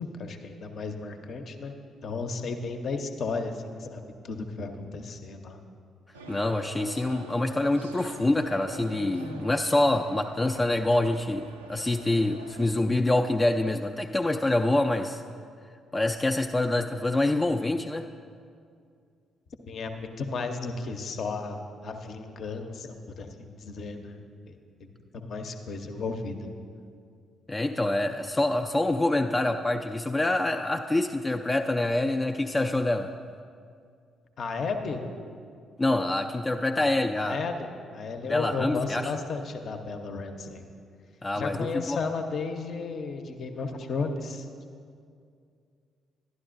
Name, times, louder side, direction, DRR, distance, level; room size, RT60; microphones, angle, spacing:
voice 1, 0.0-1.7 2.0-5.6 19.7-24.2 24.5-26.5 34.4-35.2 36.7-40.6 41.3-44.5, left 4 dB, 50° left, 6 dB, 0.7 m, -34 dB
sound 1, 6.1-12.8, right 3 dB, 85° right, 0.4 m, -45 dB
voice 2, 6.3-15.2 15.9-18.1 27.5-33.1 35.8-37.4 38.3-39.1 41.2-42.0, left 2 dB, 20° left, 5 dB, 0.3 m, -26 dB
11.5 x 11.0 x 2.5 m, 2.3 s
figure-of-eight pair, 40°, 0 cm